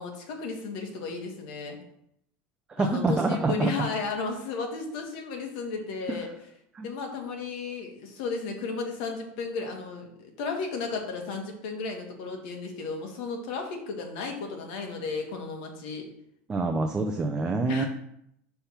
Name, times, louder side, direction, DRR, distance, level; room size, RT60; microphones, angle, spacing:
voice 1, 0.0-1.8 2.8-6.3 6.8-16.1 17.7-17.9, left 4 dB, 60° left, 3 dB, 1.5 m, -34 dB
voice 2, 2.7-3.7 6.1-6.2 6.7-6.9 16.5-17.8, right 3 dB, 15° right, 3 dB, 0.4 m, -26 dB
5.7 x 3.4 x 5.7 m, 0.75 s
supercardioid pair, 155°, 5 cm